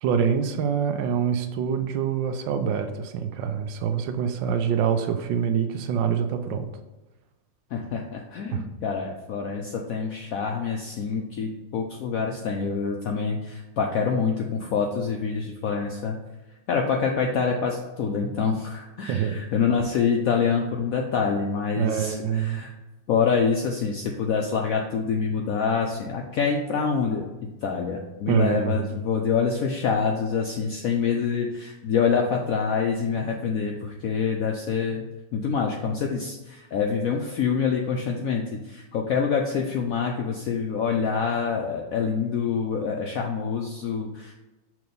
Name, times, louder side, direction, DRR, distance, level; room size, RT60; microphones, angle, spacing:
voice 1, 0.0-6.7 8.5-8.6 19.1-19.4 21.8-22.6 28.3-28.9, right 7 dB, 80° right, 8 dB, 1.3 m, -25 dB
voice 2, 7.7-16.1 16.7-22.7 23.1-27.3 27.6-35.1 35.3-44.3, left 6 dB, 75° left, 1 dB, 0.8 m, -26 dB
5.9 x 3.1 x 5.2 m, 1.1 s
omnidirectional pair, 2.0 m